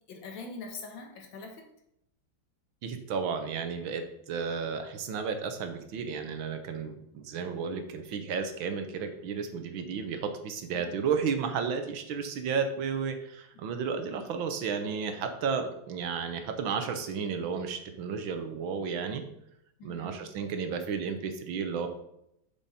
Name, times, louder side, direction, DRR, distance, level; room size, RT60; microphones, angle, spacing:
voice 1, 0.1-1.7 10.7-10.9 19.8-20.2, left 3 dB, 70° left, 3 dB, 2.0 m, -43 dB
voice 2, 2.8-19.2 19.8-21.9, right 6 dB, 80° right, 7 dB, 1.7 m, -33 dB
7.1 x 7.0 x 4.2 m, 0.78 s
omnidirectional pair, 2.2 m